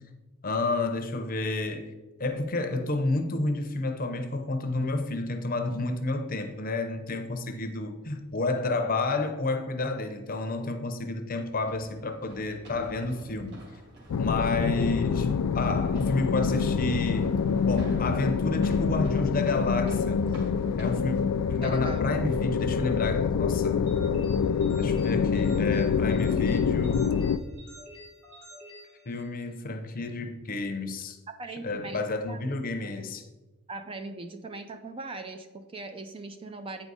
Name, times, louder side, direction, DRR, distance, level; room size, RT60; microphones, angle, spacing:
voice 1, 0.4-1.9 2.2-13.6 14.2-17.3 17.6-20.2 20.8-21.2 21.5-23.8 24.7-27.2 29.1-31.2 31.6-33.2, left 2 dB, 40° left, 0.7 m, -30 dB
sound 1, 11.4-21.2, right 1 dB, 50° right, 2.2 m, -49 dB
sound 2, 14.1-27.4, left 6 dB, 90° left, 0.4 m, -26 dB
voice 2, 21.6-22.0 31.3-32.0 32.3-32.4 33.7-36.9, right 3 dB, 25° right, 0.4 m, -40 dB
sound 3, 23.9-29.6, equal, 75° right, 2.5 m, -50 dB
8.9 x 4.8 x 4.0 m
head